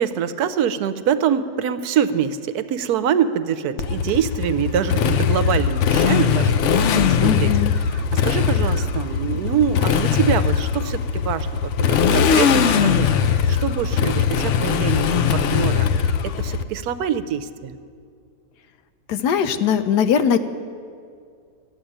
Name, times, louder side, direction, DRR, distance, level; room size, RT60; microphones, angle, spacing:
voice 1, 0.0-7.5 7.8-17.8, right 8 dB, 75° right, 12 dB, 1.1 m, -25 dB
Motorcycle, 3.8-16.6, left 7 dB, 65° left, 0.7 m, -20 dB
voice 2, 7.2-7.7 19.1-20.4, left 8 dB, 85° left, 10 dB, 1.3 m, -20 dB
13.5 x 7.9 x 10.0 m, 2.2 s
omnidirectional pair, 1.7 m